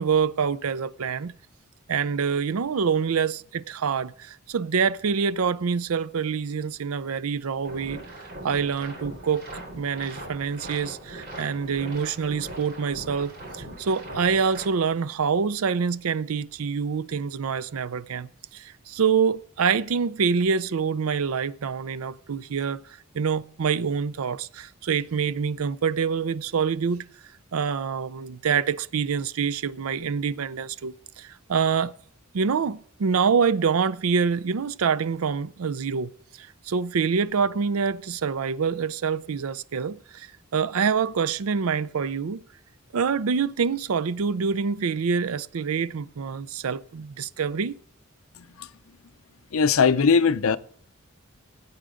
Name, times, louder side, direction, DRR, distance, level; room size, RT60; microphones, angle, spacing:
voice 1, 0.0-1.3 1.9-8.0 8.4-9.5 9.8-22.8 23.1-27.0 27.5-31.9 32.3-36.1 36.4-40.3 40.5-42.4 42.9-47.8, right 6 dB, 80° right, 0.5 m, -26 dB
sound 1, 7.7-14.7, right 1 dB, 45° right, 3.8 m, -40 dB
voice 2, 48.4-48.7 49.5-50.6, left 5 dB, 75° left, 0.5 m, -20 dB
18.5 x 8.8 x 3.8 m
head